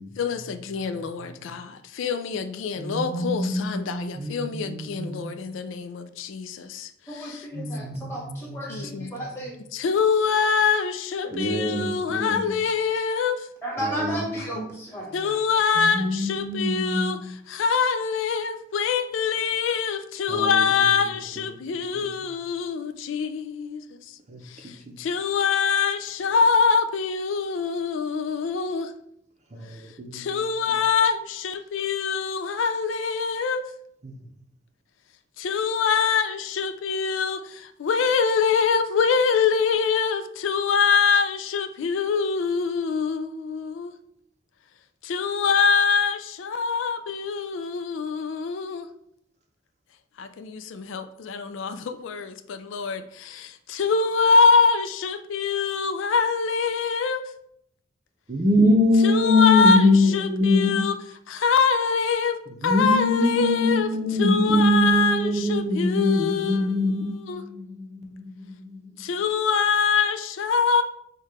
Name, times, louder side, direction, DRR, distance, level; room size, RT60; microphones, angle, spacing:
voice 1, 0.2-7.5 8.7-9.1 9.7-13.5 15.1-24.2 24.4-28.9 30.1-33.6 35.4-43.9 45.0-48.9 50.2-57.2 59.0-61.0 61.3-63.9 64.2-67.4 69.0-70.8, left 5 dB, 85° left, 0.4 m, -24 dB
voice 2, 2.8-5.3 7.5-9.1 11.3-12.5 13.8-14.2 15.8-17.3 20.3-20.6 24.3-24.4 29.5-30.2 34.0-34.1 58.3-60.9 62.6-68.9, left 1 dB, 35° right, 0.6 m, -24 dB
voice 3, 7.1-9.6 11.2-11.3 13.6-15.3, right 1 dB, 15° left, 1.4 m, -34 dB
4.6 x 2.3 x 4.8 m
head